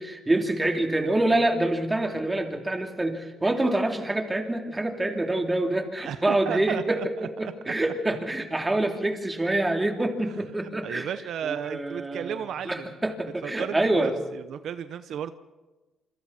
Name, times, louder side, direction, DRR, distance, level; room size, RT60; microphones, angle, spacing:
voice 1, 0.0-11.1 11.4-12.4 12.6-14.1, right 1 dB, 15° right, 3 dB, 3.2 m, -26 dB
voice 2, 6.0-7.1 7.4-7.5 10.2-10.3 10.6-12.9 13.4-15.3, right 9 dB, 70° right, 11 dB, 0.8 m, -34 dB
27.0 x 26.0 x 4.3 m, 1.2 s
cardioid pair, 90°, 0 cm